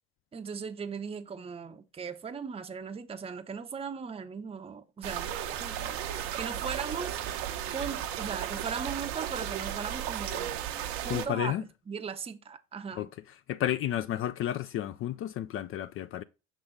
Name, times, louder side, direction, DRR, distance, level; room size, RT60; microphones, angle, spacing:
voice 1, 0.3-7.2 7.7-10.6 11.0-13.1, right 6 dB, 20° right, 0.6 m, -38 dB
sound 1, 5.0-11.3, right 10 dB, 75° right, 0.8 m, -35 dB
sound 2, 5.3-10.3, left 3 dB, 80° left, 1.8 m, -53 dB
voice 2, 11.1-11.6 13.0-13.1 13.5-16.2, left 12 dB, 45° left, 0.4 m, -31 dB
6.1 x 3.7 x 5.0 m
hypercardioid pair, 65°, 31 cm